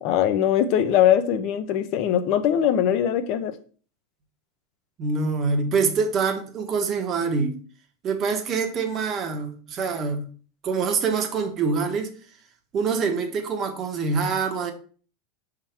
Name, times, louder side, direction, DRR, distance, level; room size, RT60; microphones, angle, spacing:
voice 1, 0.0-3.6, left 10 dB, 50° left, 0.7 m, -21 dB
voice 2, 5.0-7.6 8.0-10.3 10.6-12.1 12.7-14.7, right 5 dB, 30° right, 1.2 m, -25 dB
5.9 x 3.8 x 4.4 m
supercardioid pair, 150°, 0 cm